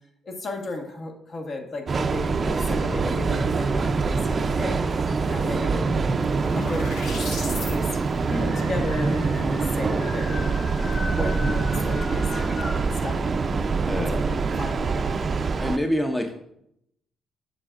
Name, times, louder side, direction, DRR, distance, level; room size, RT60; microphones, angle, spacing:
voice 1, 0.2-7.9 8.2-10.5 10.9-15.2, left 2 dB, 50° left, 2 dB, 1.5 m, -35 dB
Train, 1.9-15.8, right 4 dB, 40° right, 0.4 m, -25 dB
sound 1, 2.9-4.2 4.8-5.4 6.4-6.5 6.7-6.8 7.2-12.9, left 3 dB, 70° left, 1.8 m, -40 dB
voice 2, 5.4-5.8 13.6-14.2 15.6-16.3, equal, 10° left, 3 dB, 0.7 m, -28 dB
sound 2, 5.7-7.8, left 3 dB, 85° left, 1.2 m, -38 dB
9.6 x 6.8 x 2.5 m, 0.77 s
cardioid pair, 90°, 0 cm